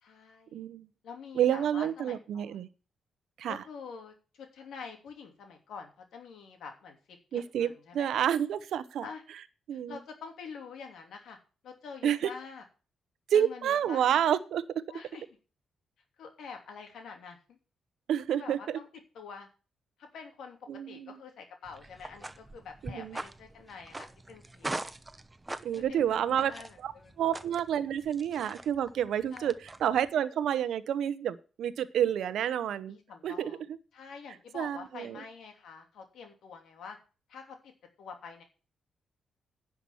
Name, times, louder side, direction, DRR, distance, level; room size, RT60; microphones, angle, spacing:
voice 1, 0.0-0.6 1.0-2.6 3.5-8.2 9.0-9.2 9.7-11.4 11.6-12.6 13.3-14.2 14.9-15.2 16.2-17.4 18.3-18.9 19.1-19.5 20.0-24.7 25.7-27.1 29.3-29.5 32.9-33.6 33.9-37.0 37.3-37.7 38.0-38.4, left 5 dB, 80° left, 3 dB, 3.0 m, -46 dB
voice 2, 0.5-0.9 1.3-2.7 3.4-3.6 7.3-9.1 9.7-10.0 12.0-12.3 13.3-14.6 18.1-18.8 20.7-21.2 22.8-23.2 25.6-26.5 26.8-26.9 27.2-33.0 33.2-33.5 34.5-35.2, right 9 dB, 80° right, 15 dB, 0.8 m, -29 dB
sound 1, 21.7-30.1, right 2 dB, 15° right, 0.9 m, -43 dB
10.5 x 5.9 x 7.1 m, 0.34 s
cardioid pair, 80°, 0 cm